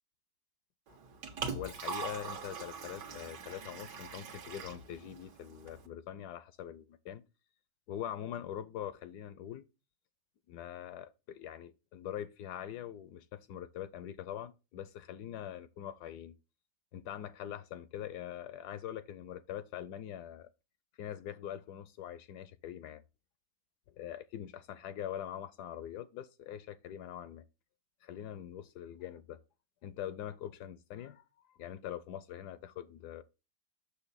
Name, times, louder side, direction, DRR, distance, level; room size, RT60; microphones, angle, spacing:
Liquid, 0.9-5.9, right 5 dB, 75° right, 1.7 m, -42 dB
voice 1, 1.5-7.2 7.9-9.7 10.5-16.3 16.9-20.5 21.0-23.0 23.9-27.4 28.0-29.4 29.8-31.2 31.6-33.2, left 11 dB, 75° left, 1.1 m, -43 dB
6.6 x 5.7 x 4.0 m
omnidirectional pair, 1.9 m